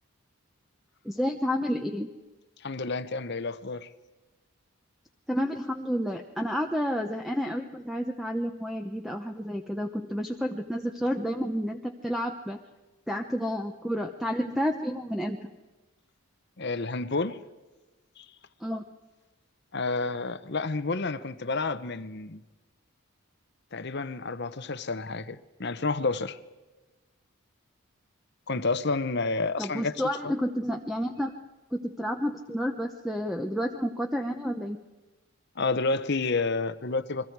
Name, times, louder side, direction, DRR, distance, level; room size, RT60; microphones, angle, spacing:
voice 1, 1.0-2.1 5.3-12.6 13.1-15.5 18.6-18.8 29.6-31.3 31.7-34.8, equal, ahead, 4 dB, 0.8 m, -30 dB
voice 2, 2.6-3.9 16.6-17.4 18.2-18.3 19.7-22.4 23.7-26.4 28.5-29.9 35.6-37.3, left 3 dB, 50° left, 13 dB, 0.9 m, -30 dB
29.5 x 23.0 x 4.7 m, 1.2 s
head